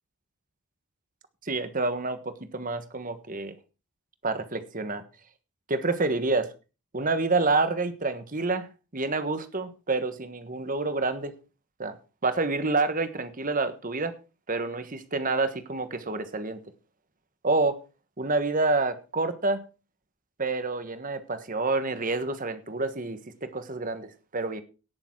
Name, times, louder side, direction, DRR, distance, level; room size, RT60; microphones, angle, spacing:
voice 1, 1.4-3.5 4.2-5.0 5.7-6.5 6.9-8.7 8.9-11.3 11.8-12.0 12.2-14.1 14.5-16.6 17.4-17.8 18.2-19.6 20.4-24.6, right 3 dB, 35° right, 1.4 m, -28 dB
17.5 x 7.0 x 4.6 m
head